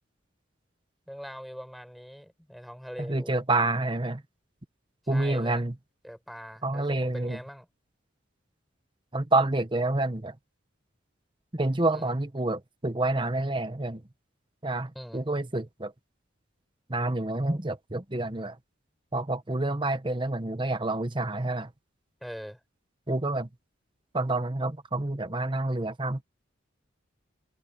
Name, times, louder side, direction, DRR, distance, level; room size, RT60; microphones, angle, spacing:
voice 1, 1.1-3.4 5.0-5.6 6.0-7.7 11.9-12.1 14.9-15.2 22.2-22.6, equal, ahead, 6.2 m, -42 dB
voice 2, 3.0-4.2 5.1-5.7 6.6-7.4 9.1-10.4 11.5-14.0 14.6-15.9 16.9-18.6 19.1-21.7 23.1-23.5 24.1-26.2, right 2 dB, 25° right, 1.0 m, -28 dB
head